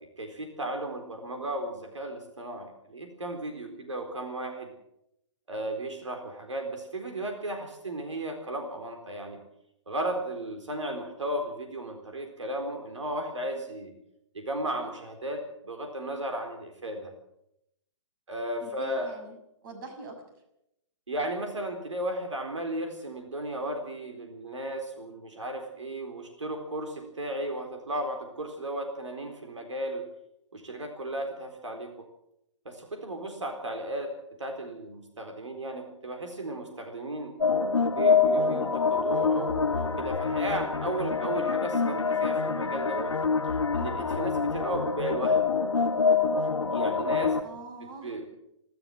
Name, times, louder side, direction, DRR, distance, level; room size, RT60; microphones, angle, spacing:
voice 1, 0.2-4.7 5.5-9.4 9.9-13.9 14.3-17.1 18.3-19.1 21.1-30.0 30.5-32.1 32.6-37.3 37.8-43.1 43.4-45.4 46.7-47.4 47.8-48.2, right 1 dB, 85° right, 4 dB, 4.1 m, -35 dB
voice 2, 18.6-19.3 19.6-20.1 47.4-48.4, right 3 dB, 45° right, 6 dB, 6.3 m, -43 dB
sound 1, 37.4-47.4, left 5 dB, 85° left, 1.3 m, -26 dB
27.5 x 13.0 x 7.7 m, 0.82 s
figure-of-eight pair, 130°, 15 cm